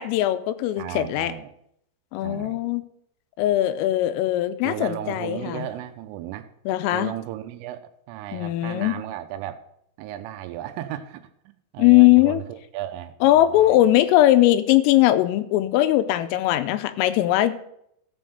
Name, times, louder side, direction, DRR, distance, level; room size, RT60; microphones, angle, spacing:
voice 1, 0.0-1.3 2.1-2.8 3.4-5.7 6.7-7.1 8.3-9.0 11.8-12.4 13.2-17.7, left 14 dB, 85° left, 3.2 m, -20 dB
voice 2, 0.8-1.5 2.2-2.6 4.6-6.5 6.9-9.6 10.0-13.9, right 12 dB, 85° right, 3.1 m, -35 dB
14.5 x 5.7 x 6.6 m
omnidirectional pair, 5.9 m